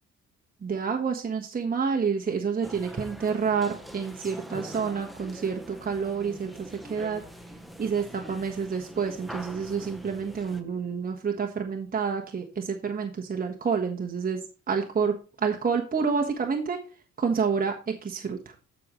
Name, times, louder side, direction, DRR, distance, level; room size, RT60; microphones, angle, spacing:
voice 1, 0.6-7.2 7.8-15.1 15.4-16.8 17.2-18.5, right 6 dB, 30° right, 2 dB, 1.3 m, -28 dB
sound 1, 2.6-10.6, equal, ahead, 1.1 m, -43 dB
13.5 x 5.2 x 3.1 m, 0.34 s
cardioid pair, 90°, 30 cm